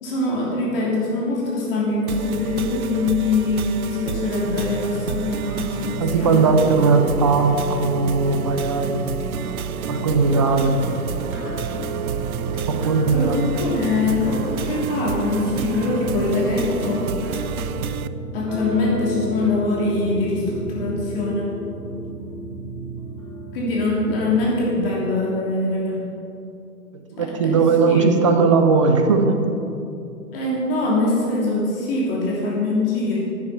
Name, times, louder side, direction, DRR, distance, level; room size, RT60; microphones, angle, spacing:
voice 1, 0.0-6.5 13.1-17.1 18.3-21.5 23.5-26.0 27.4-27.6 27.9-28.0 30.3-33.2, left 2 dB, 35° left, -5 dB, 3.1 m, -23 dB
sound 1, 2.1-18.1, right 7 dB, 65° right, 0.5 m, -30 dB
sound 2, 4.3-17.3, left 1 dB, 20° left, 2.7 m, -37 dB
voice 2, 6.0-9.0 9.9-10.7 12.7-13.4 27.1-29.4, right 4 dB, 20° right, 6 dB, 0.5 m, -18 dB
sound 3, 7.9-25.0, right 2 dB, ahead, 2.0 m, -33 dB
10.5 x 8.7 x 5.6 m, 2.7 s
figure-of-eight pair, 125°, 46 cm